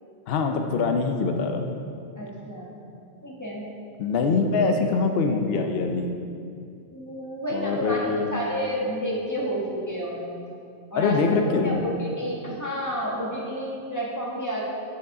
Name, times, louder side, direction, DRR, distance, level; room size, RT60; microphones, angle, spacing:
voice 1, 0.3-1.7 4.0-6.1 7.5-8.4 11.0-11.9, left 4 dB, 65° left, 5 dB, 0.9 m, -24 dB
voice 2, 2.2-2.7 3.2-3.6 4.8-4.9 6.9-10.4 10.9-11.2 11.6-14.6, equal, 15° left, -5 dB, 1.6 m, -30 dB
8.0 x 6.8 x 4.8 m, 2.5 s
omnidirectional pair, 1.1 m